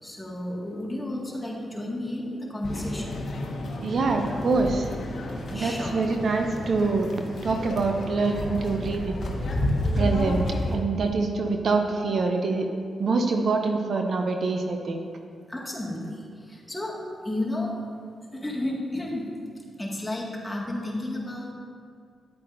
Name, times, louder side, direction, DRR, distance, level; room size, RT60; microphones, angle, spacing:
voice 1, 0.0-3.1 5.5-6.0 15.5-17.8 18.3-19.3 19.8-21.5, left 1 dB, 10° left, -3 dB, 1.9 m, -32 dB
sound 1, 2.6-10.7, left 1 dB, 60° left, 1.0 m, -31 dB
voice 2, 3.8-4.9 5.5-7.1 7.4-9.1 10.0-10.5 10.7-12.7 13.0-15.1, right 3 dB, 65° right, 4 dB, 0.6 m, -25 dB
9.6 x 8.4 x 2.6 m, 2.2 s
supercardioid pair, 45°, 0 cm